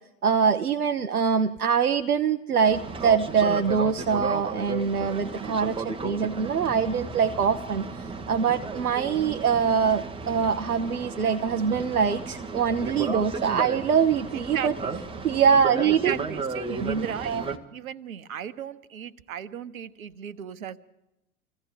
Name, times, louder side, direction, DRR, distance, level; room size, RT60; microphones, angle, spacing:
voice 1, 0.2-14.7 15.2-16.1 16.8-17.4, right 6 dB, 85° right, 6 dB, 0.7 m, -24 dB
Boat Water vehicle, 2.6-17.6, right 4 dB, 10° right, 1.0 m, -34 dB
voice 2, 5.9-6.3 14.3-15.0 15.8-20.8, right 9 dB, 65° right, 14 dB, 1.0 m, -36 dB
27.5 x 15.5 x 3.3 m, 0.88 s
figure-of-eight pair, 90°, 44 cm